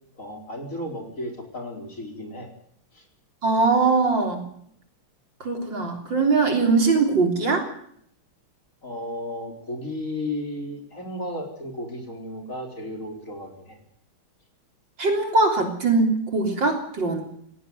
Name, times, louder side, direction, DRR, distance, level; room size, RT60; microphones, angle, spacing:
voice 1, 0.2-2.5 2.9-3.0 8.8-13.8, left 1 dB, 35° left, 3 dB, 4.7 m, -34 dB
voice 2, 3.4-4.4 5.4-7.7 15.0-17.2, right 3 dB, 60° right, 4 dB, 4.1 m, -21 dB
18.5 x 17.0 x 9.6 m, 0.66 s
omnidirectional pair, 2.4 m